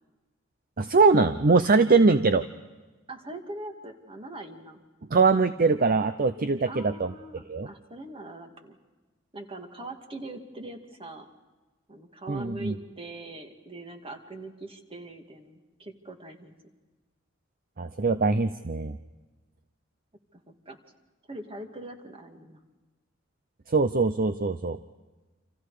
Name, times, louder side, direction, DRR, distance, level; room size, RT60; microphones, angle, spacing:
voice 1, 0.8-2.4 5.1-7.1 7.5-7.7 12.3-12.8 17.8-19.0 23.7-24.8, right 4 dB, 45° right, 11 dB, 0.7 m, -22 dB
voice 2, 3.1-4.8 6.7-8.8 9.3-11.3 11.9-16.5 20.3-20.8 21.3-22.6, right 2 dB, 25° right, 5 dB, 2.2 m, -42 dB
29.5 x 27.0 x 5.0 m, 1.2 s
head